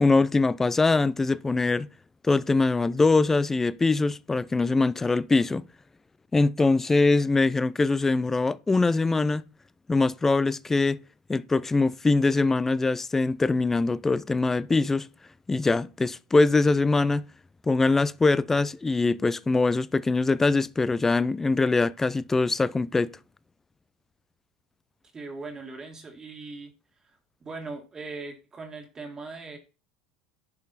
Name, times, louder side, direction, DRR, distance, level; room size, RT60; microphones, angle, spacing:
voice 1, 0.0-1.9 2.2-5.6 6.3-9.4 9.9-11.0 11.3-15.1 15.5-17.3 17.7-23.1, left 3 dB, 15° left, 0.4 m, -23 dB
voice 2, 25.1-26.7 27.4-29.6, right 3 dB, 25° right, 1.8 m, -39 dB
10.5 x 5.3 x 4.0 m
hypercardioid pair, 80°, 2 cm